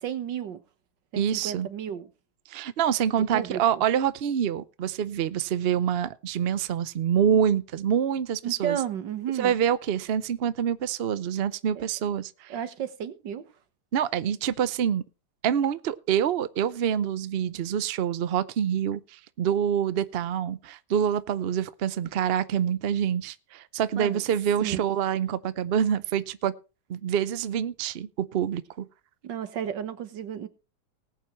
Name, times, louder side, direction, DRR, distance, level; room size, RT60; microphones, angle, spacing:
voice 1, 0.0-0.6 1.1-2.1 3.3-3.8 8.4-9.5 11.8-11.9 12.5-13.4 24.0-24.2 24.6-24.8 29.2-30.5, right 9 dB, 85° right, 1.9 m, -33 dB
voice 2, 1.2-1.7 2.5-8.8 9.4-12.5 13.9-15.0 15.4-26.5 26.9-28.9, right 9 dB, 60° right, 0.6 m, -26 dB
19.5 x 8.4 x 3.1 m
omnidirectional pair, 1.9 m